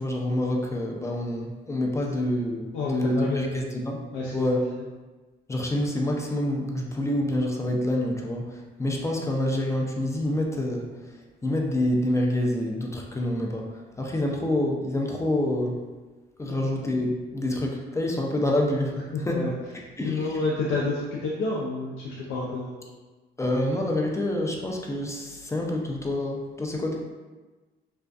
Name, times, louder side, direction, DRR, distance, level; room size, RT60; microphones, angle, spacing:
voice 1, 0.0-4.1 4.3-4.6 5.5-10.9 11.4-13.7 14.0-15.8 16.4-19.0 19.3-19.5 20.0-20.3 23.4-27.0, left 1 dB, 15° left, 0 dB, 0.3 m, -27 dB
voice 2, 2.7-3.6 4.1-4.7 16.4-16.5 18.9-19.5 20.0-22.8, left 3 dB, 90° left, -5 dB, 0.4 m, -29 dB
2.5 x 2.2 x 2.3 m, 1.2 s
cardioid pair, 90°, 20 cm